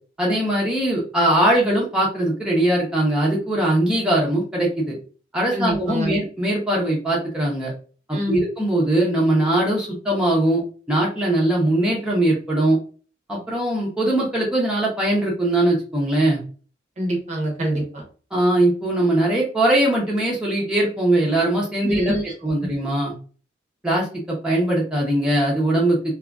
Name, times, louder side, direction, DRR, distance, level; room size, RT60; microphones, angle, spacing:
voice 1, 0.2-5.0 5.3-7.7 8.1-10.6 10.9-12.8 13.3-16.4 18.3-22.2 22.4-23.1 23.8-26.0, right 1 dB, 5° right, -5 dB, 0.7 m, -21 dB
voice 2, 5.5-6.1 8.1-8.4 17.0-18.0 21.8-22.3 22.6-22.7, right 1 dB, 40° right, 0 dB, 0.8 m, -25 dB
2.7 x 2.5 x 2.3 m, 0.38 s
head